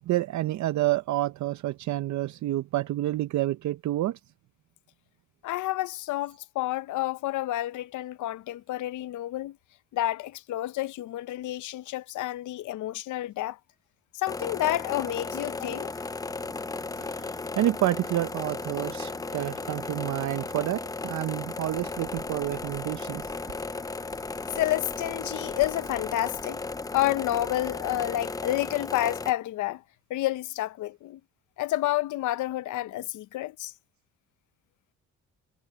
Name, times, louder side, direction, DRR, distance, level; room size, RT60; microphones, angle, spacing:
voice 1, 0.1-4.2 17.0-23.3, right 15 dB, 70° right, 0.6 m, -29 dB
voice 2, 5.4-9.6 9.9-13.6 14.1-15.9 24.6-26.6 26.9-29.8 30.1-31.2 31.6-33.7, left 15 dB, 80° left, 0.7 m, -29 dB
sound 1, 14.3-29.3, left 3 dB, 10° left, 0.5 m, -35 dB
sound 2, 21.6-28.8, right 2 dB, 10° right, 6.0 m, -53 dB
cardioid pair, 90°, 30 cm